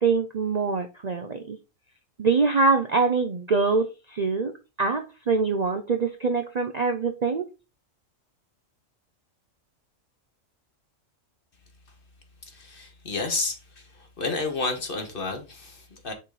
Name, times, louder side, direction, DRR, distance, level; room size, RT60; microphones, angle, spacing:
voice 1, 0.0-1.6 2.2-7.5, right 4 dB, 45° right, 0.5 m, -24 dB
voice 2, 12.5-13.6 14.2-16.1, left 3 dB, 45° left, 1.5 m, -30 dB
6.1 x 4.0 x 4.0 m
omnidirectional pair, 1.3 m